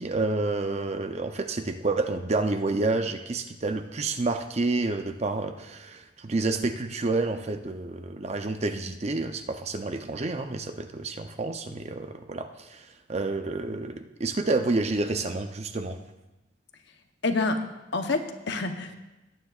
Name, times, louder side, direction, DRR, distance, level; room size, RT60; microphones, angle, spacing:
voice 1, 0.0-16.0, right 3 dB, 35° right, 7 dB, 0.6 m, -29 dB
voice 2, 17.2-17.6 17.9-18.9, left 3 dB, 60° left, 6 dB, 0.9 m, -27 dB
18.0 x 9.4 x 2.4 m, 1.0 s
head